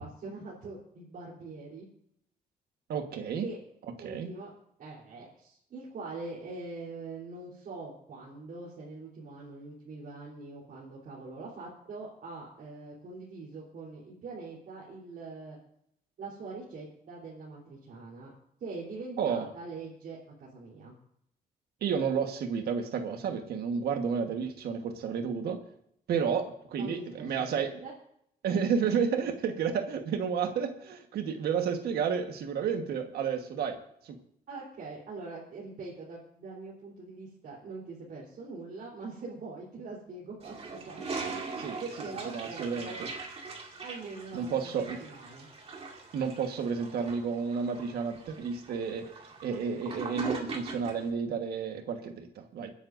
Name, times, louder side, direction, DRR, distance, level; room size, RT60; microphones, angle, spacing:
voice 1, 0.0-1.9 3.4-3.6 4.0-4.5 4.8-15.6 16.2-18.3 18.6-20.9 26.8-27.9 34.5-43.0 43.8-44.7 45.0-45.5, right 3 dB, 65° right, -5 dB, 3.7 m, -43 dB
voice 2, 2.9-3.5 4.0-4.3 19.2-19.5 21.8-25.6 26.1-27.7 28.4-33.8 34.0-34.2 41.6-41.8 42.2-43.1 44.3-45.0 46.1-49.1 49.4-52.7, right 6 dB, 85° right, 6 dB, 1.4 m, -31 dB
Toilet flush, 40.4-51.1, right 3 dB, 40° right, 2.2 m, -41 dB
29.5 x 9.9 x 2.6 m, 0.73 s
cardioid pair, 125°, 16 cm